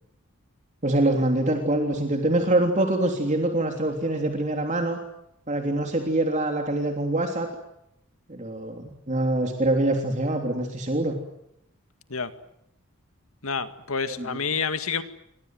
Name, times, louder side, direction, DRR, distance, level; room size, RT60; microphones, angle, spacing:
voice 1, 0.8-5.0 5.5-7.5 8.3-11.1 14.2-14.3, right 1 dB, 35° right, 3 dB, 3.3 m, -24 dB
voice 2, 13.4-15.0, left 5 dB, 75° left, 10 dB, 2.1 m, -28 dB
29.0 x 24.0 x 7.8 m, 0.80 s
head